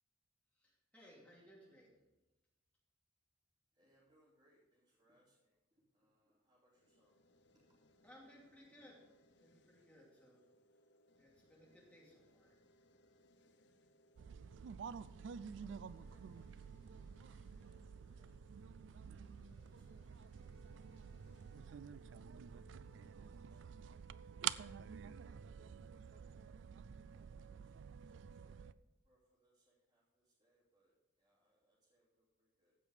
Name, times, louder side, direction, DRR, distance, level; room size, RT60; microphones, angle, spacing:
voice 1, 0.6-1.9 8.0-9.1 9.4-10.4 11.2-12.6 15.5-15.8, equal, 5° left, -5 dB, 2.8 m, -62 dB
voice 2, 3.7-7.2 7.7-7.8 15.4-16.9 17.3-18.8 19.5-22.1 23.1-23.7 24.4-24.8 25.2-25.4 25.7-28.7 29.0-32.7, equal, 25° right, -9 dB, 3.0 m, -77 dB
sound 1, 6.7-25.8, equal, 60° left, 0.7 m, -72 dB
sound 2, 14.2-28.7, right 8 dB, 70° right, 0.3 m, -49 dB
15.5 x 5.3 x 5.0 m, 1.0 s
head